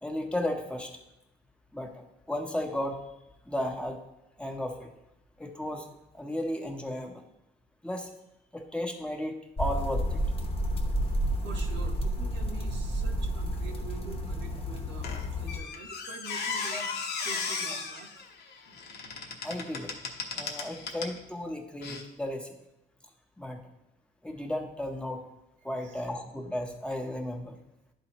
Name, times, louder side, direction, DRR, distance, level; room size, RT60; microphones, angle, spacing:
voice 1, 0.0-0.9 1.7-3.0 3.5-4.0 4.4-4.9 5.4-5.9 6.1-7.2 7.8-8.1 8.5-10.2 16.7-16.8 19.4-19.9 20.3-22.5 23.4-23.6 24.2-25.2 25.6-27.6, left 1 dB, 5° left, 2 dB, 0.9 m, -34 dB
sound 1, 9.6-15.6, equal, 30° left, 1.0 m, -30 dB
voice 2, 11.4-16.9 17.2-18.2 25.8-26.0, right 4 dB, 85° right, 5 dB, 1.1 m, -46 dB
Squeak, 15.0-21.2 21.8-22.0, left 4 dB, 70° left, 1.0 m, -36 dB
11.0 x 4.1 x 3.0 m, 0.91 s
cardioid pair, 110°, 18 cm